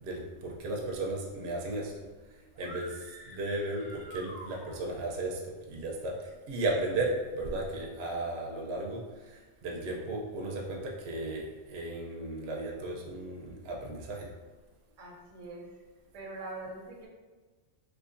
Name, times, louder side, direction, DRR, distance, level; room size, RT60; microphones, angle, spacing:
voice 1, 0.0-1.9 2.6-14.3, right 2 dB, 65° right, -1 dB, 0.8 m, -35 dB
sound 1, 2.5-5.1, right 1 dB, 20° left, 0.7 m, -48 dB
voice 2, 15.0-15.7 16.1-17.1, right 2 dB, 85° right, -1 dB, 1.1 m, -43 dB
3.3 x 3.1 x 2.5 m, 1.3 s
omnidirectional pair, 1.3 m